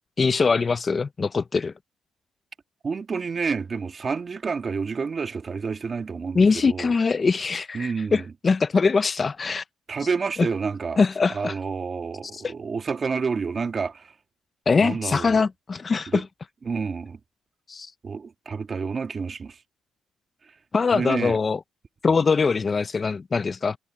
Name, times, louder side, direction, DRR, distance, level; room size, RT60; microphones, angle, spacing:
voice 1, 0.2-1.7 6.3-9.6 10.4-10.5 11.0-11.5 12.3-12.5 14.7-16.3 17.7-17.9 20.7-21.6 22.0-23.8, left 4 dB, 35° left, 0.6 m, -22 dB
voice 2, 2.8-6.9 7.7-8.2 9.9-11.0 11.3-14.1 14.8-15.4 16.1-16.2 16.7-17.2 18.0-19.6 20.9-21.4, right 5 dB, 40° right, 1.9 m, -29 dB
cardioid pair, 90°, 0 cm